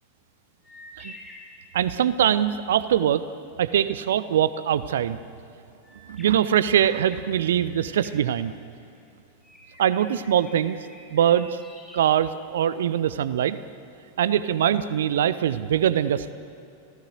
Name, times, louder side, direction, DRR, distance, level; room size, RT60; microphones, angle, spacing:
sound 1, 0.6-2.4 5.8-9.0 9.4-12.9, left 1 dB, 10° left, 7.3 m, -49 dB
voice 1, 1.7-3.2 3.6-5.2 6.1-8.5 9.8-10.8 11.1-11.6 11.9-13.6 14.2-16.3, right 10 dB, 60° right, 15 dB, 0.8 m, -22 dB
29.5 x 17.5 x 8.1 m, 2.7 s
figure-of-eight pair, 90°, 0 cm